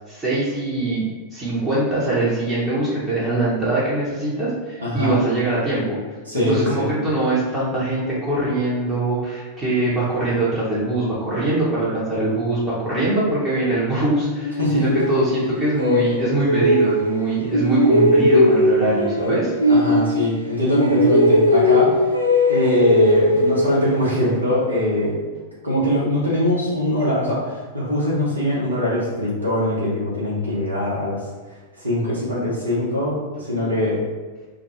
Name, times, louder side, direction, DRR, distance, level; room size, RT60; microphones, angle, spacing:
voice 1, 0.1-6.0 6.3-19.5, right 2 dB, 15° right, -9 dB, 0.8 m, -22 dB
voice 2, 4.8-5.1 6.3-6.9 14.6-14.8 19.7-22.0 22.5-25.2 25.6-31.2 31.8-34.0, left 1 dB, 80° right, -8 dB, 0.8 m, -22 dB
sound 1, 14.4-17.2 17.5-20.5 20.7-24.2, left 1 dB, 85° left, 0.3 m, -18 dB
2.2 x 2.2 x 3.0 m, 1.3 s
figure-of-eight pair, 90°, 0 cm